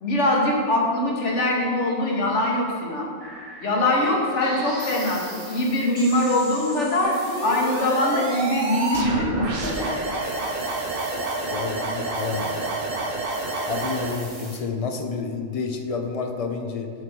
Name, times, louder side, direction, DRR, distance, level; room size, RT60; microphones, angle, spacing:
voice 1, 0.0-3.1 3.6-7.1 7.4-10.0, left 1 dB, 85° left, -1 dB, 1.6 m, -23 dB
sound 1, 3.2-14.6, right 1 dB, 30° right, 1.3 m, -41 dB
sound 2, 7.0-14.2, right 2 dB, 55° right, 1.1 m, -28 dB
voice 2, 11.5-12.8 13.6-16.9, left 4 dB, 40° left, 4 dB, 0.6 m, -29 dB
7.5 x 4.8 x 6.0 m, 2.1 s
omnidirectional pair, 1.2 m